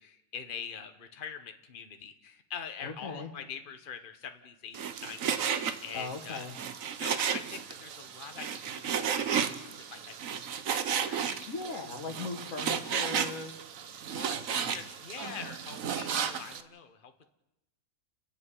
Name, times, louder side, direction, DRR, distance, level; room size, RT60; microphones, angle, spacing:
voice 1, 0.0-6.5 7.0-11.4 14.1-17.3, left 7 dB, 40° left, 8 dB, 1.3 m, -44 dB
voice 2, 2.8-3.3 5.9-6.5 11.5-13.5 14.5-14.9, left 4 dB, 70° left, 2 dB, 2.2 m, -39 dB
Frying (food), 4.7-16.6, right 7 dB, 75° right, 1.4 m, -33 dB
29.5 x 10.5 x 9.1 m, 0.94 s
omnidirectional pair, 1.4 m